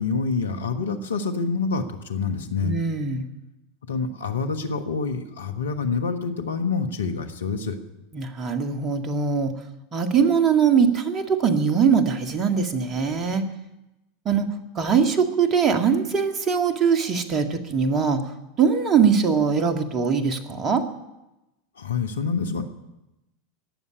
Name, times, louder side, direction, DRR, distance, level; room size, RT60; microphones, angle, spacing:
voice 1, 0.0-2.8 3.8-7.8 21.8-22.6, left 4 dB, 80° left, 8 dB, 1.4 m, -27 dB
voice 2, 2.6-3.3 8.1-9.5 9.9-13.4 14.3-14.5 14.8-18.2 18.6-20.8, right 6 dB, 30° right, 6 dB, 1.9 m, -21 dB
18.5 x 7.3 x 10.0 m, 0.97 s
hypercardioid pair, 85°, 0 cm